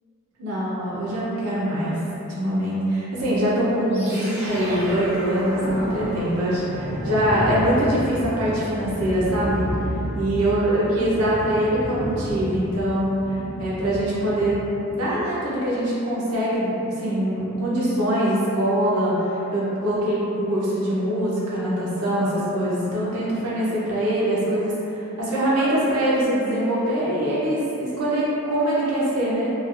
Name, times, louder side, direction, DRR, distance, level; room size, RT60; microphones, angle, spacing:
voice 1, 0.4-1.9 2.4-9.7 10.2-14.6 14.9-16.7 17.0-29.5, right 1 dB, 85° right, -7 dB, 0.8 m, -23 dB
sound 1, 3.9-15.0, equal, 30° right, 0.6 m, -31 dB
3.1 x 2.3 x 2.4 m, 3.0 s
head